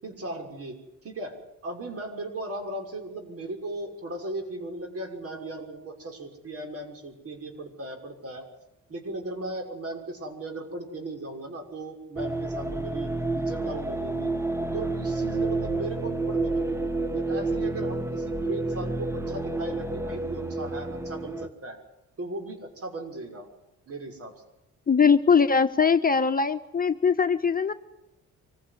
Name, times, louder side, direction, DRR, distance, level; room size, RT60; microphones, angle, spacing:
voice 1, 0.0-8.4 8.9-14.3 14.7-21.8 22.2-23.5 23.9-24.3, right 2 dB, 50° right, 4 dB, 6.2 m, -37 dB
sound 1, 12.2-21.5, right 2 dB, 10° right, 1.3 m, -29 dB
voice 2, 24.9-27.7, left 6 dB, 30° left, 7 dB, 1.2 m, -21 dB
25.0 x 16.5 x 9.8 m, 0.92 s
cardioid pair, 90°, 30 cm